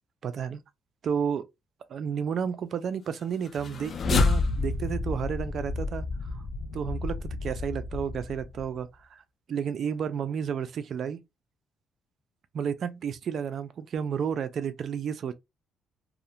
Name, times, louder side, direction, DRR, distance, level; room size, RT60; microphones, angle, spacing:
voice 1, 0.2-0.6 1.0-1.4 1.9-6.1 6.3-6.4 6.7-9.2 9.5-11.2 12.5-15.3, right 7 dB, 55° right, 0.3 m, -31 dB
sound 1, 3.5-8.8, left 3 dB, 45° left, 0.3 m, -29 dB
2.4 x 2.1 x 2.7 m
cardioid pair, 105°, 0 cm